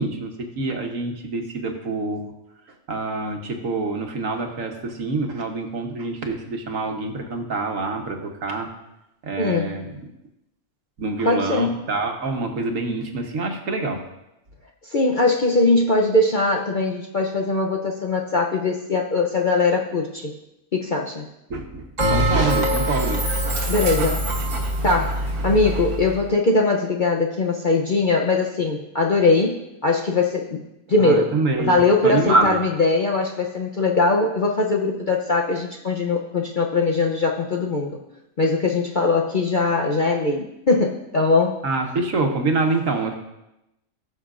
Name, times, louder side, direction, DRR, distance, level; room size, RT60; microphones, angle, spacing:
voice 1, 0.0-2.2 2.9-8.7 9.2-10.0 11.0-14.0 21.5-23.2 31.0-32.6 41.6-43.1, right 3 dB, 60° right, 3 dB, 1.5 m, -26 dB
voice 2, 9.4-9.7 11.2-11.8 14.8-20.3 20.7-21.3 23.7-24.3 24.8-30.6 30.9-31.3 31.6-38.0 38.4-41.6, left 3 dB, 45° left, 0 dB, 0.7 m, -21 dB
Bell, 22.0-24.8, right 1 dB, 30° right, 1.2 m, -25 dB
Dog, 22.1-26.3, equal, 80° right, 1.6 m, -26 dB
19.0 x 6.3 x 2.5 m, 0.91 s
omnidirectional pair, 1.6 m